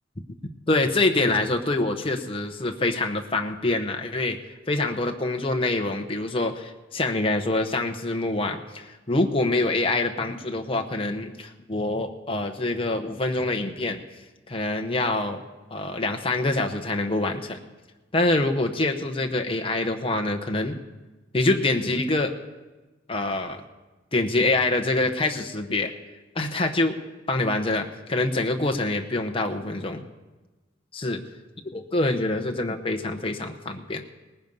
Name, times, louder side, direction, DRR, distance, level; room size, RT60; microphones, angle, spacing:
voice 1, 0.7-4.4 4.7-14.0 14.5-15.4 15.7-17.6 18.1-20.8 21.3-22.3 23.1-23.6 24.1-25.9 26.3-27.0 27.3-30.0 31.0-31.2 31.7-34.0, left 2 dB, 30° left, 4 dB, 0.9 m, -25 dB
19.0 x 10.0 x 5.4 m, 1.1 s
head